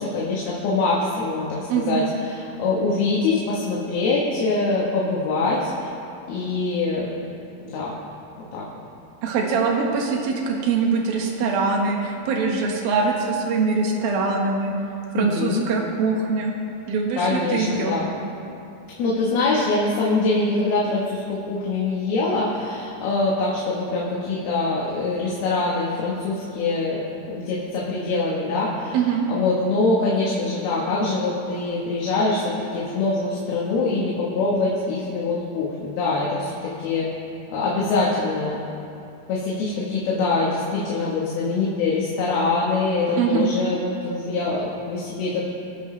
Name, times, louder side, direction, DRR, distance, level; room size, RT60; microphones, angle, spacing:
voice 1, 0.0-5.9 6.3-7.1 7.6-7.9 8.5-8.6 15.1-15.7 17.1-18.1 19.0-29.0 29.3-37.1 37.5-38.6 39.3-45.5, left 3 dB, 80° left, -5 dB, 3.4 m, -24 dB
voice 2, 1.7-2.1 9.2-14.7 15.1-16.5 16.9-18.0 28.9-29.3 43.2-43.5, right 4 dB, 70° right, 0 dB, 3.1 m, -23 dB
26.5 x 8.9 x 3.3 m, 2.7 s
omnidirectional pair, 4.5 m